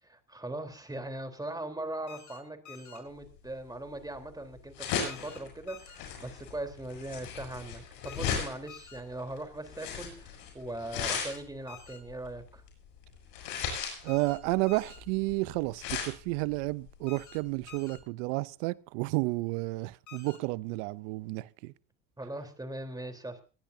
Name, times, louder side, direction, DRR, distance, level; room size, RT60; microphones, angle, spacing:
voice 1, 0.0-12.6 22.2-23.4, right 1 dB, 10° right, 3.8 m, -40 dB
sound 1, 2.1-2.4 2.7-3.0 5.1-5.4 5.7-6.0 8.1-8.4 8.7-9.0 11.1-11.4 11.7-12.0 14.1-14.4 14.7-15.0 17.1-17.4 17.7-18.0 20.1-20.4, left 9 dB, 50° left, 7.7 m, -50 dB
sound 2, 3.2-18.0, left 7 dB, 70° left, 7.2 m, -38 dB
voice 2, 14.0-21.7, right 23 dB, 75° right, 0.7 m, -31 dB
22.5 x 16.5 x 2.8 m
hypercardioid pair, 75°, 37 cm